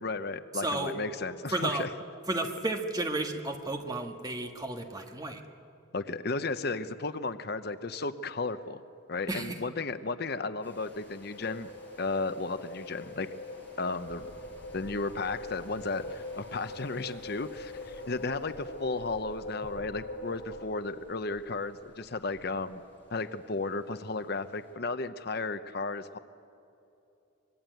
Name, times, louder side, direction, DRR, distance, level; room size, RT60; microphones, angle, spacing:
voice 1, 0.0-1.9 5.9-8.8 9.1-11.7 12.0-13.3 13.8-14.3 14.7-22.8 23.1-26.2, left 3 dB, 50° left, 11 dB, 0.8 m, -34 dB
voice 2, 0.5-1.0 1.5-1.9 2.3-5.4 9.3-9.6, right 2 dB, 20° right, 4 dB, 1.7 m, -32 dB
sound 1, 10.6-24.7, left 1 dB, 10° left, 5.6 m, -55 dB
sound 2, 11.3-20.7, left 2 dB, 75° left, 2.4 m, -43 dB
25.0 x 21.5 x 9.3 m, 2.9 s
head